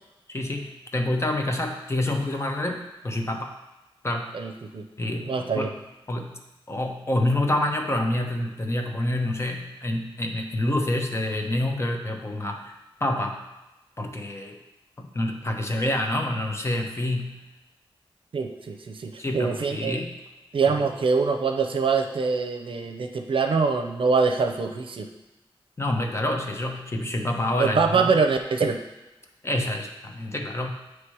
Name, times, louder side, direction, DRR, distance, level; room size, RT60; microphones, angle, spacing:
voice 1, 0.3-3.5 4.0-4.3 5.0-5.7 6.1-6.4 6.7-12.7 13.0-13.4 14.0-14.6 15.0-17.4 19.2-20.1 20.7-20.8 25.8-28.2 29.4-30.7, left 1 dB, 30° left, 3 dB, 0.8 m, -27 dB
voice 2, 4.3-4.9 5.2-5.7 18.3-20.0 20.5-25.1 27.6-28.8, right 5 dB, 65° right, 5 dB, 0.6 m, -24 dB
8.4 x 3.2 x 4.7 m, 1.0 s
wide cardioid pair, 110°, 10 cm